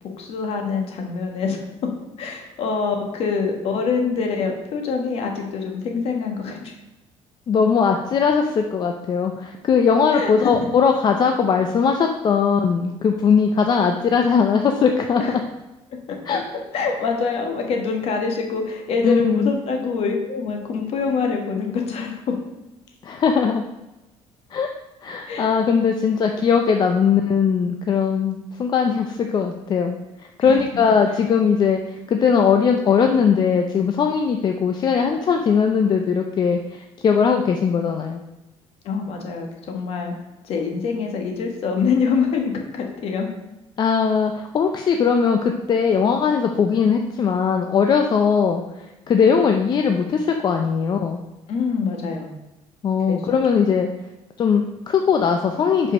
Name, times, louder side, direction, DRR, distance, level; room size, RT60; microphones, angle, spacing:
voice 1, 0.2-1.6 2.2-6.7 10.1-10.6 15.2-15.3 16.1-16.4 16.7-22.2 25.3-25.5 30.4-30.6 38.8-40.1 40.4-43.3 51.5-52.3 53.1-53.2, left 5 dB, 55° left, 2 dB, 1.4 m, -25 dB
voice 2, 7.5-15.4 16.3-16.4 19.0-19.5 23.0-23.6 24.5-24.7 25.0-38.2 43.8-48.6 49.1-51.2 52.8-53.9 54.4-55.9, left 6 dB, 35° left, 4 dB, 0.5 m, -19 dB
5.4 x 5.3 x 5.4 m, 0.99 s
cardioid pair, 135°, 12 cm